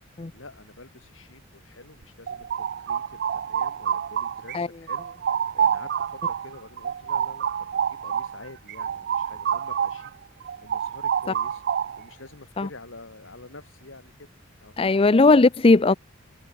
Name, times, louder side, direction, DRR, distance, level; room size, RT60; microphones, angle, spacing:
voice 1, 0.1-10.1 10.6-11.6 12.0-14.3 14.6-14.8, left 2 dB, 65° left, 3.0 m, -47 dB
sound 1, 2.0-4.6 4.9-10.1 10.4-12.1, right 8 dB, 50° right, 0.4 m, -27 dB
voice 2, 14.8-15.9, left 3 dB, 25° left, 0.5 m, -17 dB
head